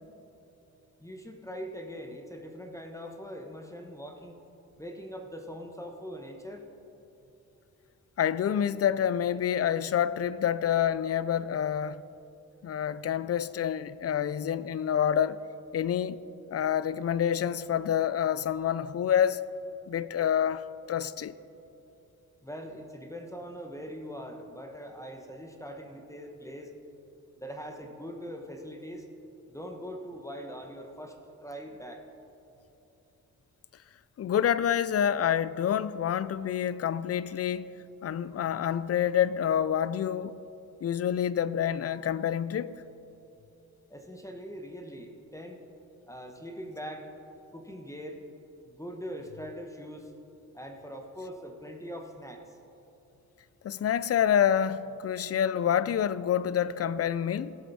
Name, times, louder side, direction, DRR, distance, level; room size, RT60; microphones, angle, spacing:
voice 1, 1.0-4.4 4.8-6.7 22.4-26.7 27.4-29.2 29.5-32.0 43.9-45.6 46.1-47.1 47.5-48.2 48.7-50.1 50.5-52.6, equal, 10° left, 1.2 m, -42 dB
voice 2, 8.2-12.0 12.6-15.4 15.7-16.2 16.5-19.4 19.9-21.3 34.2-37.7 38.0-40.4 40.8-42.8 53.6-57.6, left 9 dB, 45° left, 0.4 m, -27 dB
18.0 x 7.6 x 4.2 m
cardioid pair, 70°, 35 cm